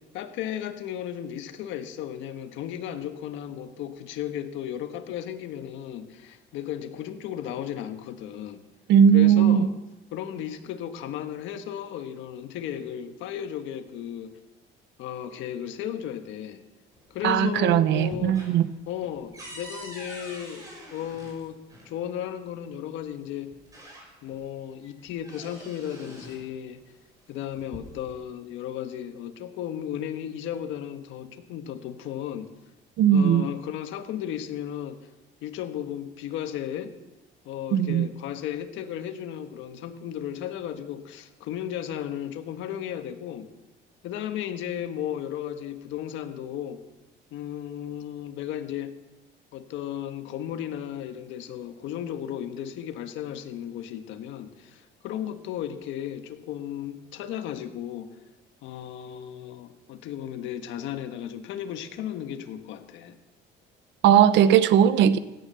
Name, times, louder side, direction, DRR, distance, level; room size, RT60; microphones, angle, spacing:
voice 1, 0.1-8.6 9.1-9.7 10.1-14.3 15.0-16.6 17.1-18.4 18.9-23.5 24.2-26.8 27.3-32.5 33.1-35.0 35.4-36.9 37.4-43.5 44.0-46.8 47.3-48.9 49.5-58.1 58.6-63.2, left 10 dB, 75° left, 7 dB, 1.4 m, -35 dB
voice 2, 8.9-9.7 17.2-18.6 33.0-33.4 37.7-38.1 64.0-65.2, right 9 dB, 65° right, 14 dB, 0.9 m, -18 dB
sound 1, 16.9-17.6 17.9-21.9 23.0-23.1 23.5-24.4 24.8-26.5 27.4-28.2, equal, 15° right, 5.9 m, -45 dB
16.5 x 10.5 x 6.8 m, 0.99 s
cardioid pair, 135°, 20 cm